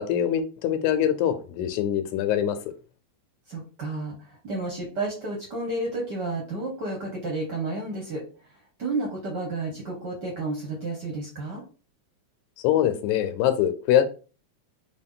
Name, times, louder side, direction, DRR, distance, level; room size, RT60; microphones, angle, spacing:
voice 1, 0.0-2.6 12.6-14.0, left 10 dB, 90° left, 10 dB, 2.0 m, -23 dB
voice 2, 3.5-8.2 8.8-11.6, right 2 dB, 60° right, -1 dB, 1.1 m, -31 dB
5.0 x 2.3 x 3.7 m, 0.36 s
omnidirectional pair, 3.4 m